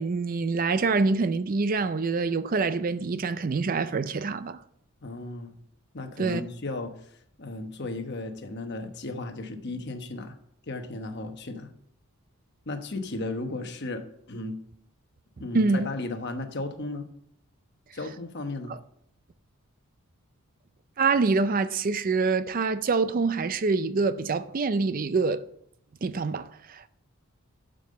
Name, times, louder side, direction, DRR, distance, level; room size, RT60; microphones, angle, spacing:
voice 1, 0.0-4.6 6.2-6.4 15.5-15.9 18.7-18.8 21.0-25.4 26.0-26.9, right 4 dB, 40° right, 0.4 m, -25 dB
voice 2, 5.0-5.6 5.9-10.4 10.7-11.7 12.7-14.6 15.4-17.1 17.9-18.7, left 2 dB, 50° left, 1.1 m, -35 dB
11.5 x 5.4 x 6.6 m
head